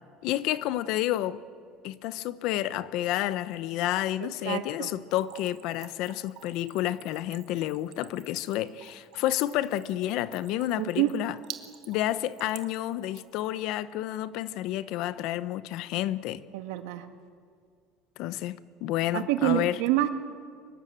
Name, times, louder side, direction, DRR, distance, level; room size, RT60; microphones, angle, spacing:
voice 1, 0.2-1.4 1.8-11.4 11.9-16.4 18.2-19.8, left 14 dB, 55° left, 0.8 m, -30 dB
voice 2, 4.2-4.9 10.8-11.1 16.5-17.0 19.1-20.2, right 14 dB, 85° right, 1.7 m, -27 dB
Splash splatter / Trickle dribble, 5.1-13.4, right 13 dB, 55° right, 1.6 m, -48 dB
24.5 x 21.5 x 7.6 m
cardioid pair, 165°, 0 cm